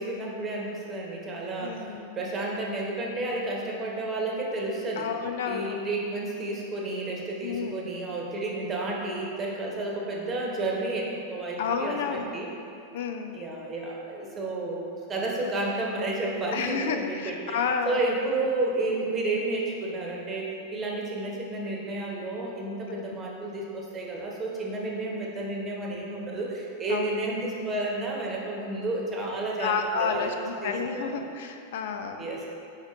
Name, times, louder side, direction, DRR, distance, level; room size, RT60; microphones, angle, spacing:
voice 1, 0.0-5.1 5.4-12.5 13.3-17.6 17.8-30.3 30.6-31.3 32.2-32.4, right 2 dB, 25° right, -2 dB, 1.0 m, -31 dB
voice 2, 1.6-2.2 5.0-5.8 7.4-8.0 11.6-12.4 12.9-13.5 16.5-18.0 23.1-23.2 26.9-27.1 29.6-32.2, left 6 dB, 55° left, 5 dB, 0.3 m, -30 dB
4.9 x 4.8 x 4.0 m, 2.6 s
figure-of-eight pair, 90°, 0 cm